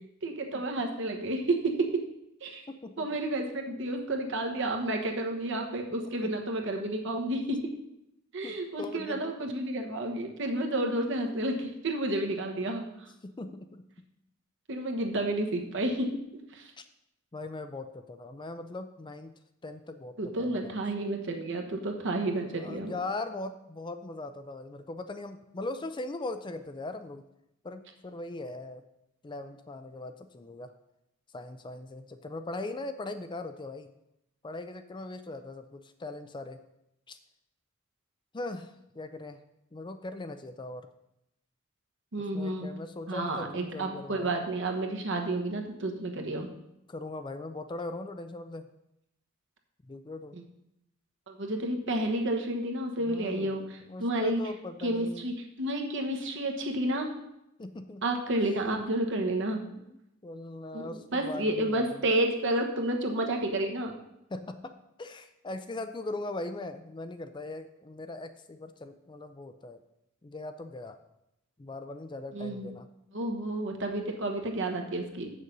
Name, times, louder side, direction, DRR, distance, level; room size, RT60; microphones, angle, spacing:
voice 1, 0.2-2.0 2.4-2.6 3.0-7.7 8.3-12.8 14.7-16.2 16.5-16.7 20.2-22.9 42.1-42.7 43.1-46.5 51.3-54.4 54.8-57.1 58.0-59.6 60.7-63.9 72.3-72.7 73.1-75.3, right 1 dB, 65° right, 3 dB, 1.2 m, -31 dB
voice 2, 2.7-3.2 6.0-6.3 8.4-9.4 13.2-13.8 16.8-16.9 17.3-19.3 19.6-20.1 20.4-20.8 22.2-27.2 27.6-28.8 29.2-30.7 31.3-33.9 34.4-36.6 37.1-37.2 38.3-39.4 39.7-40.9 42.2-44.3 46.9-48.7 49.8-50.4 53.0-55.3 57.6-58.0 59.6-62.1 64.3-64.7 65.0-69.8 70.2-71.0 71.6-72.9, left 2 dB, 25° left, 9 dB, 0.5 m, -40 dB
7.5 x 6.5 x 5.4 m, 0.84 s
head